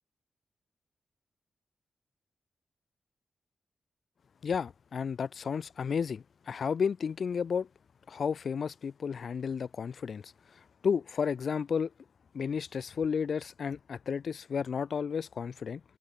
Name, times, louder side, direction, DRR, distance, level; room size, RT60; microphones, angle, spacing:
voice 1, 4.4-7.7 8.1-10.3 10.8-11.9 12.3-15.8, left 6 dB, 55° left, 0.7 m, -32 dB
open air
wide cardioid pair, 165°, 0 cm